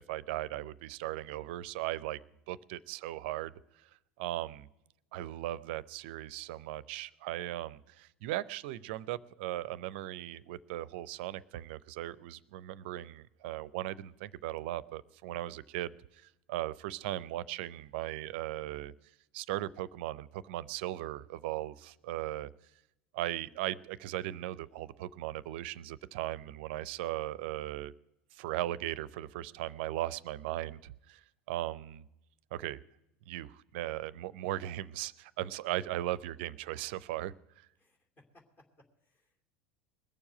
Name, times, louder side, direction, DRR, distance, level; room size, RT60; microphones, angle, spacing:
voice 1, 0.0-2.2 2.5-3.5 3.8-3.9 4.2-4.7 5.1-18.9 19.3-22.5 23.1-27.9 28.3-31.2 31.5-32.1 32.5-32.8 33.3-37.7, right 15 dB, 60° right, 21 dB, 0.5 m, -38 dB
voice 2, 37.8-39.4, left 1 dB, 30° left, 3 dB, 2.7 m, -65 dB
20.5 x 7.2 x 9.0 m, 0.88 s
figure-of-eight pair, 75°, 6 cm